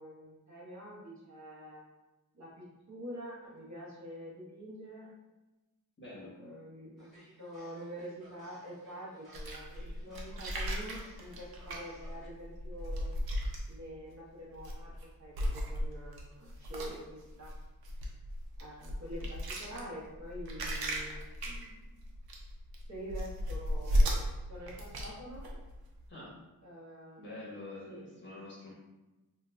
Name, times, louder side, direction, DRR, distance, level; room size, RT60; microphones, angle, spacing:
voice 1, 0.0-1.8 2.3-5.1 6.2-13.1 13.7-17.5 18.6-21.8 22.9-24.1 24.4-25.4 26.6-27.3 27.9-28.1, equal, 50° right, -6 dB, 1.1 m, -46 dB
voice 2, 6.0-6.3 26.1-26.4 27.2-28.7, left 2 dB, 30° left, -6 dB, 1.2 m, -46 dB
sound 1, 7.0-12.3, right 1 dB, ahead, 1.4 m, -59 dB
sound 2, 9.3-14.1 14.5-15.0 15.3-26.1, equal, 85° right, 0.7 m, -35 dB
3.9 x 2.6 x 2.2 m, 1.1 s
wide cardioid pair, 125°, 36 cm